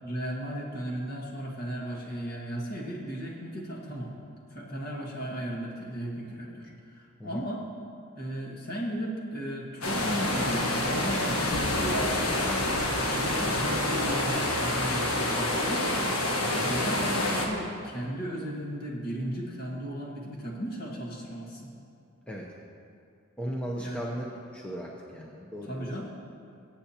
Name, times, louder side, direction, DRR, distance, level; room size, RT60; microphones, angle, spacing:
voice 1, 0.0-4.1 4.5-7.6 8.1-12.7 13.0-16.1 16.6-21.7 23.7-24.0 25.7-26.0, right 1 dB, 45° left, -2 dB, 1.7 m, -35 dB
sound 1, 9.8-17.5, left 1 dB, 85° left, 1.3 m, -27 dB
voice 2, 16.4-16.7 22.3-22.5 23.4-24.3 24.5-25.9, equal, 5° left, -2 dB, 0.7 m, -37 dB
21.0 x 8.2 x 2.9 m, 2.5 s
head